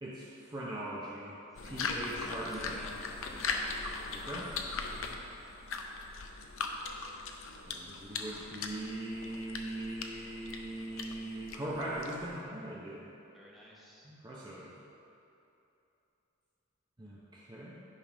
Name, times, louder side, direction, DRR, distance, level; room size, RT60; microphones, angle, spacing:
voice 1, 0.0-1.3 1.6-2.8 4.1-4.5 7.7-13.1 14.0-14.7 17.0-17.8, right 1 dB, 20° right, -7 dB, 0.7 m, -40 dB
sound 1, 1.5-12.4, left 4 dB, 70° left, 0.6 m, -40 dB
voice 2, 1.5-2.0 2.4-3.7 13.3-14.1, equal, ahead, -6 dB, 1.1 m, -54 dB
9.8 x 3.6 x 5.0 m, 2.9 s
head